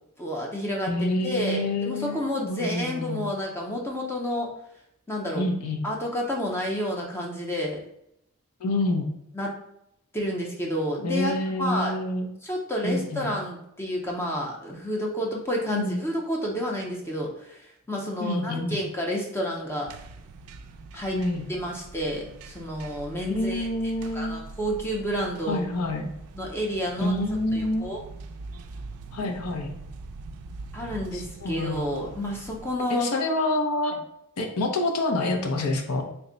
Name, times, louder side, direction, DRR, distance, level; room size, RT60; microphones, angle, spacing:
voice 1, 0.2-4.5 5.1-5.5 5.8-7.8 9.3-9.5 10.1-11.3 11.6-11.9 12.4-19.9 20.9-21.2 21.5-23.7 24.1-25.6 26.3-27.1 27.5-28.0 30.7-33.1, equal, 10° left, -1 dB, 0.5 m, -30 dB
voice 2, 0.9-3.2 5.3-5.9 8.6-9.1 11.0-12.3 12.8-13.3 15.7-16.0 18.2-18.8 21.1-21.4 23.3-24.5 25.5-26.1 27.0-27.9 29.1-29.8 31.1-32.0 32.9-34.0 34.4-36.0, left 1 dB, 80° left, 4 dB, 0.6 m, -27 dB
sound 1, 19.9-32.8, right 3 dB, 75° right, 0.3 m, -43 dB
3.4 x 2.1 x 3.7 m, 0.76 s
head